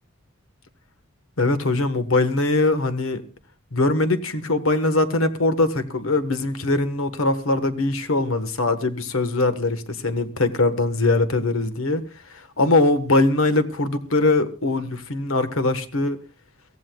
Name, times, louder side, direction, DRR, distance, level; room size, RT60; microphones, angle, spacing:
voice 1, 1.4-3.2 3.7-16.2, left 2 dB, 75° left, 1.4 m, -22 dB
23.5 x 16.5 x 2.3 m
head